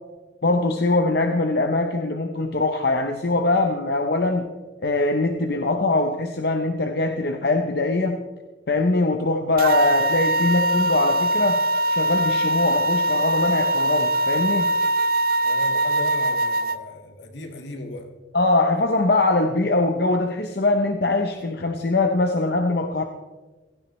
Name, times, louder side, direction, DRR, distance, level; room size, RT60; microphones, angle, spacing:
voice 1, 0.4-4.5 4.8-8.2 8.7-11.6 11.9-14.7 18.3-23.0, left 2 dB, 60° left, 0.8 m, -22 dB
sound 1, 9.6-16.8, right 1 dB, 50° right, 0.6 m, -22 dB
voice 2, 15.4-18.1, left 2 dB, 75° left, 1.8 m, -36 dB
16.5 x 15.0 x 3.2 m
head